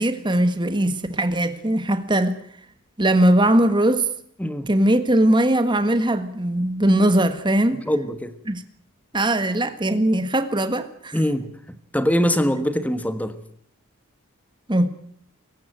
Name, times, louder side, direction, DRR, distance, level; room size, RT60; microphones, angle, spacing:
voice 1, 0.0-2.4 3.0-4.1 4.7-7.8 8.5-8.6 9.1-11.2 14.7-14.9, right 1 dB, 20° right, 1.5 m, -20 dB
voice 2, 7.8-8.3 11.1-11.5 11.9-13.4, equal, 5° left, 1.5 m, -22 dB
24.5 x 15.0 x 9.1 m
head